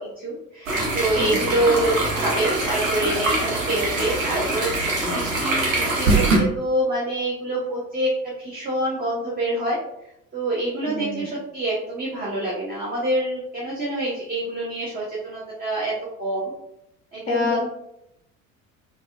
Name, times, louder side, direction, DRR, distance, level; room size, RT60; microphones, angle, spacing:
voice 1, 0.0-9.8 10.3-16.5 17.1-17.6, right 1 dB, 20° right, -6 dB, 0.9 m, -26 dB
sound 1, 0.7-6.4, right 2 dB, 75° right, 0.9 m, -23 dB
voice 2, 1.1-1.6 5.0-5.2 10.9-11.3 17.3-17.6, left 3 dB, 20° left, -1 dB, 0.6 m, -30 dB
3.9 x 2.4 x 2.5 m, 0.81 s
figure-of-eight pair, 65°, 40 cm